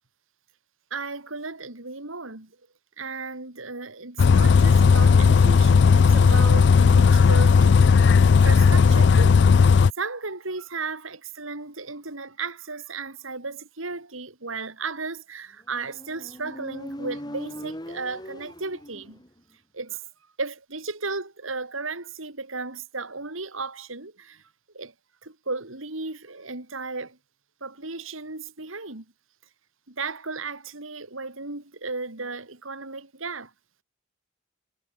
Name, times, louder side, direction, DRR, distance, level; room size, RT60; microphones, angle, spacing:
voice 1, 0.9-2.5 3.0-19.2 19.7-20.0 20.4-24.4 24.7-24.9 25.2-27.2 27.6-29.1 29.9-33.5, right 3 dB, 85° right, 3.9 m, -35 dB
Bus, 4.2-9.9, left 5 dB, 55° left, 0.4 m, -16 dB
Motorcycle, 15.7-19.4, equal, 20° left, 3.5 m, -39 dB
head